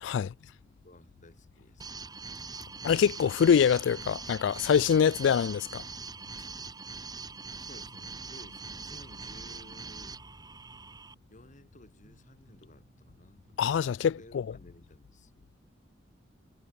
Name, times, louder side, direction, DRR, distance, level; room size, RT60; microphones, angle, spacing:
voice 1, 0.1-1.9 6.4-6.6 7.5-10.1 10.5-10.6 11.3-13.6 14.0-15.6, left 1 dB, 45° left, 6.4 m, -56 dB
sound 1, 1.8-11.1, right 4 dB, 20° right, 3.0 m, -43 dB
voice 2, 2.8-5.8 13.6-14.4, left 7 dB, 75° left, 0.3 m, -24 dB
Bass guitar, 6.6-13.8, right 1 dB, 75° right, 4.0 m, -64 dB
head